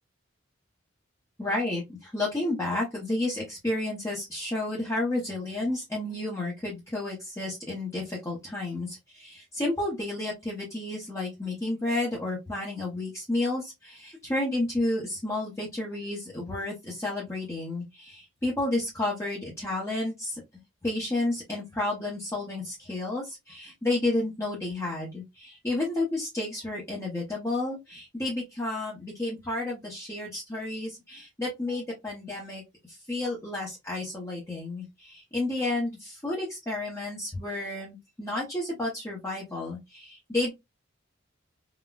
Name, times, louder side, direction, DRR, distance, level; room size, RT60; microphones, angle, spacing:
voice 1, 1.4-20.4 20.8-32.6 32.9-40.5, left 2 dB, 15° left, -4 dB, 0.7 m, -31 dB
3.9 x 2.1 x 2.3 m, 0.21 s
head